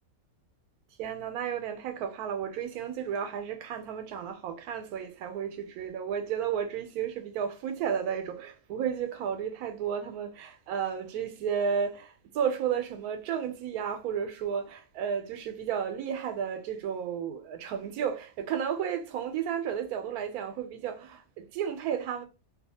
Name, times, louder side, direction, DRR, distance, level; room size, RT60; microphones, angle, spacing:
voice 1, 1.0-22.2, right 8 dB, 90° right, 1.1 m, -33 dB
2.7 x 2.3 x 2.7 m
omnidirectional pair, 1.5 m